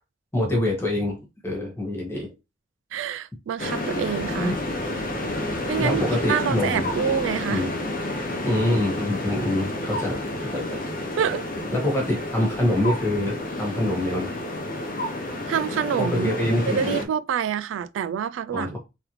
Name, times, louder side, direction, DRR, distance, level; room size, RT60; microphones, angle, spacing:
voice 1, 0.3-1.2 1.4-2.3 4.4-4.5 5.8-6.9 7.5-7.7 8.4-10.6 11.7-14.4 16.0-17.1 18.5-18.8, left 1 dB, 15° left, 1.5 m, -25 dB
voice 2, 2.9-4.5 5.7-7.7 11.2-11.5 15.5-18.8, right 8 dB, 75° right, 0.3 m, -27 dB
sound 1, 3.6-17.0, left 1 dB, 45° left, 0.8 m, -30 dB
3.6 x 3.4 x 3.0 m
head